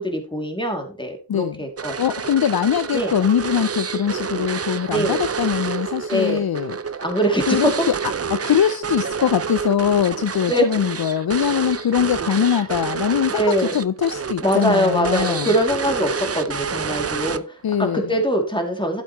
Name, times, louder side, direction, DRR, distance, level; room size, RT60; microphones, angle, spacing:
voice 1, 0.0-1.9 2.9-3.1 4.9-5.2 6.1-6.4 7.0-7.9 10.5-10.7 13.3-13.7 14.4-19.0, equal, 10° left, 2.5 m, -22 dB
voice 2, 1.3-1.6 2.0-6.8 7.5-8.0 8.3-15.5 17.6-18.1, left 9 dB, 60° left, 0.5 m, -22 dB
sound 1, 1.8-17.7, right 6 dB, 35° right, 0.5 m, -28 dB
11.5 x 8.3 x 3.0 m
wide cardioid pair, 55°, 41 cm